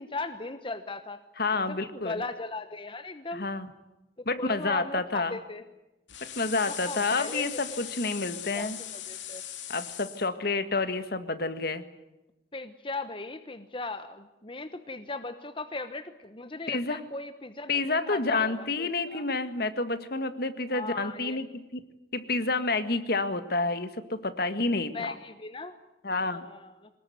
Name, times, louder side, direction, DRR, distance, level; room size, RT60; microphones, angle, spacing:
voice 1, 0.0-1.2 1.5-3.5 4.2-5.6 6.7-7.6 8.5-9.4 12.5-19.2 20.7-21.4 24.9-25.8 26.3-26.9, left 3 dB, 30° left, 9 dB, 1.1 m, -38 dB
voice 2, 1.4-2.2 3.3-3.7 4.3-5.3 6.4-8.8 9.7-11.8 16.7-17.0 17.7-21.8 22.1-25.1 26.0-26.5, left 3 dB, 55° left, 10 dB, 1.8 m, -29 dB
sound 1, 6.1-10.3, left 11 dB, 85° left, 2.6 m, -39 dB
23.5 x 20.0 x 9.6 m, 0.99 s
head